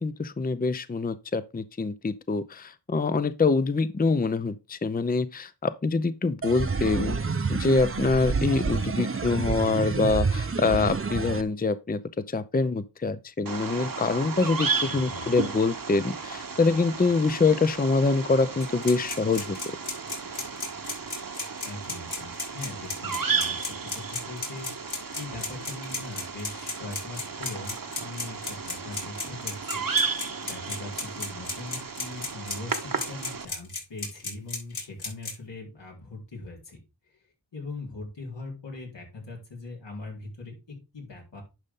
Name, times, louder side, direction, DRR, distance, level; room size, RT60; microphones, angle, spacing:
voice 1, 0.0-7.2 7.5-12.0 12.3-19.6, left 3 dB, 20° left, 0.6 m, -25 dB
sound 1, 6.4-11.4, right 4 dB, 30° right, 0.8 m, -28 dB
Bird vocalization bird call bird song, 13.5-33.5, right 5 dB, 50° right, 1.2 m, -34 dB
voice 2, 14.8-15.3 21.6-23.7 23.9-24.7 25.2-29.9 30.4-36.8 37.5-41.4, left 2 dB, 85° left, 4.0 m, -40 dB
sound 2, 18.6-35.3, left 3 dB, 65° left, 5.9 m, -33 dB
10.5 x 5.3 x 3.7 m
wide cardioid pair, 55°, 42 cm